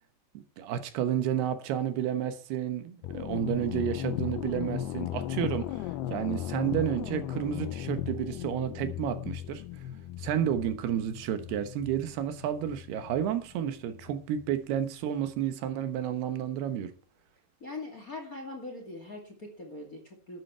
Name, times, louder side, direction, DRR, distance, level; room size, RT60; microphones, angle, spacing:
voice 1, 0.6-9.6 10.2-16.9, right 10 dB, 80° right, 3.2 m, -31 dB
sound 1, 3.0-14.5, left 12 dB, 90° left, 2.8 m, -37 dB
voice 2, 17.6-20.4, left 2 dB, 25° left, 2.2 m, -41 dB
12.5 x 10.0 x 4.5 m
omnidirectional pair, 4.6 m